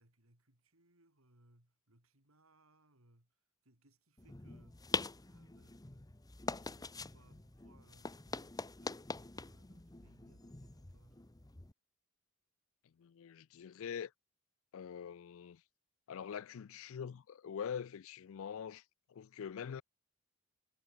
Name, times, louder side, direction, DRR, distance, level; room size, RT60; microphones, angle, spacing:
voice 1, 0.0-5.8 6.4-11.2, right 1 dB, 75° right, 5.0 m, -69 dB
sound 1, 4.2-11.7, left 3 dB, 20° left, 0.9 m, -44 dB
voice 2, 13.0-14.1 14.7-15.6 16.1-18.8 19.1-19.8, left 7 dB, 70° left, 0.4 m, -44 dB
head